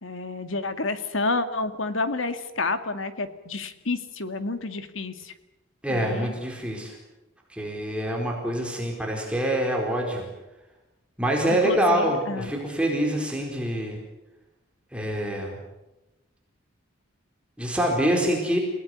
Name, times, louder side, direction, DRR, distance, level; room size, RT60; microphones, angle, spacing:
voice 1, 0.0-5.3 5.9-6.3 11.6-12.5, left 3 dB, 70° left, 9 dB, 2.2 m, -29 dB
voice 2, 5.8-6.9 7.5-10.2 11.2-14.0 14.9-15.6 17.6-18.6, right 1 dB, 5° right, 0 dB, 4.5 m, -25 dB
29.0 x 18.5 x 9.6 m, 1.0 s
head